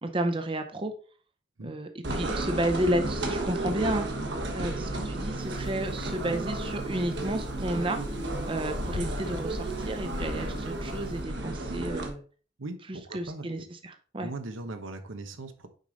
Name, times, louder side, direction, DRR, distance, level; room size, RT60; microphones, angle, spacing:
voice 1, 0.0-0.9 1.6-12.2 13.1-14.3, right 1 dB, 25° right, 6 dB, 0.7 m, -32 dB
sound 1, 2.0-12.1, right 2 dB, 60° right, 1.3 m, -33 dB
sound 2, 5.4-11.2, left 3 dB, 45° left, 0.4 m, -43 dB
voice 2, 12.6-13.7 14.2-15.7, right 2 dB, 85° right, 8 dB, 1.0 m, -39 dB
6.5 x 5.0 x 4.0 m, 0.40 s
head